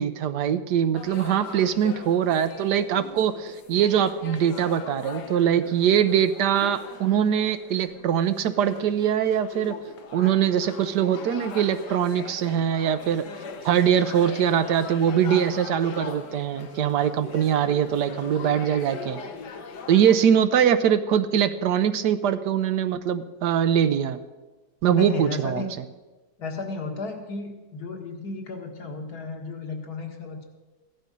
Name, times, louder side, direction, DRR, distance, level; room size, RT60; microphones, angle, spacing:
voice 1, 0.0-9.7 10.1-13.3 13.6-19.2 19.9-24.2 24.8-25.6, right 9 dB, 90° right, 10 dB, 1.4 m, -22 dB
sound 1, 0.9-20.2, left 5 dB, 85° left, 1.6 m, -41 dB
voice 2, 24.9-25.7 26.4-30.4, left 3 dB, 70° left, 3 dB, 2.2 m, -33 dB
15.5 x 11.5 x 5.3 m, 1.2 s
omnidirectional pair, 1.7 m